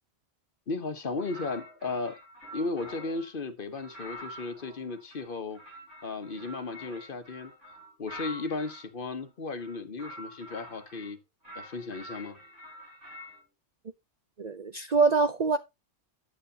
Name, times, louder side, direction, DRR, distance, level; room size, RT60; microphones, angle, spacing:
voice 1, 0.7-2.2 2.5-5.6 6.0-7.5 8.0-11.2 11.5-12.4, left 3 dB, 50° left, 1.2 m, -35 dB
sound 1, 1.2-3.3 3.8-8.9 9.5-11.1 11.4-13.4, left 1 dB, 90° right, 4.9 m, -46 dB
voice 2, 14.4-15.6, right 4 dB, 50° right, 0.6 m, -24 dB
9.5 x 9.3 x 2.8 m
omnidirectional pair, 1.2 m